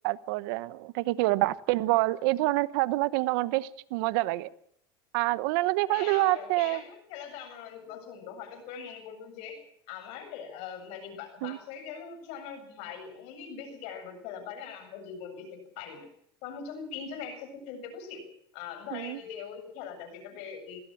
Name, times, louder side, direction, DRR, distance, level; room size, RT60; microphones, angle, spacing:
voice 1, 0.0-4.5 5.1-6.8 11.4-11.6 18.9-19.2, right 19 dB, 70° right, 1.1 m, -27 dB
voice 2, 5.9-9.6 9.9-16.1 16.4-18.3 18.5-20.8, left 7 dB, 65° left, 7.9 m, -41 dB
20.0 x 17.0 x 7.8 m
supercardioid pair, 110°, 12 cm